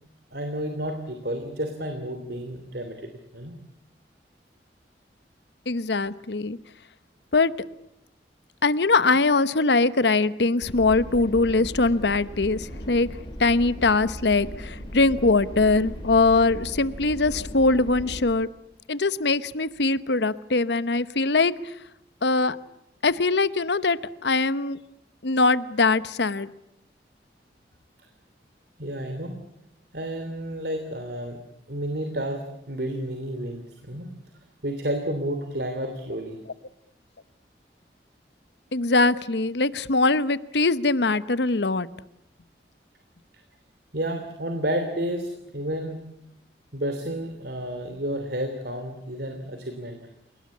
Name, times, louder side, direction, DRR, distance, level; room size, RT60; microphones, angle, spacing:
voice 1, 0.3-3.6 28.8-29.4 29.9-31.4 31.7-34.1 34.6-36.4 43.9-46.0 46.7-50.0, right 1 dB, 65° right, 6 dB, 3.0 m, -31 dB
voice 2, 5.7-6.6 7.3-7.5 8.6-13.1 13.4-18.5 18.9-21.7 22.2-22.6 23.0-24.8 25.2-26.5 38.7-41.9, left 3 dB, 75° left, 15 dB, 1.0 m, -22 dB
sound 1, 10.6-18.2, equal, 30° left, 6.4 m, -37 dB
30.0 x 18.5 x 8.6 m, 0.82 s
head